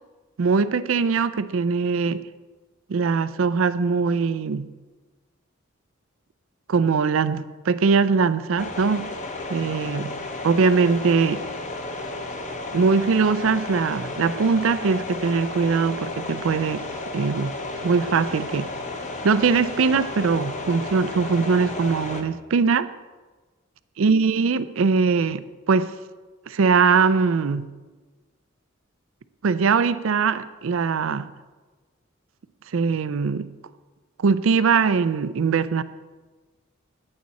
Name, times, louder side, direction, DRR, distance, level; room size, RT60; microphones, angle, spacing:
voice 1, 0.4-2.2 2.9-4.7 6.7-9.1 9.5-10.1 10.4-11.4 12.7-16.8 17.1-17.5 17.8-18.7 19.2-22.9 24.0-25.4 25.7-25.9 26.5-27.7 29.4-31.3 32.7-33.5 34.2-35.8, right 5 dB, 70° right, 15 dB, 0.4 m, -21 dB
sound 1, 8.6-22.2, left 2 dB, 35° left, 0.9 m, -33 dB
10.5 x 8.9 x 4.2 m, 1.3 s
head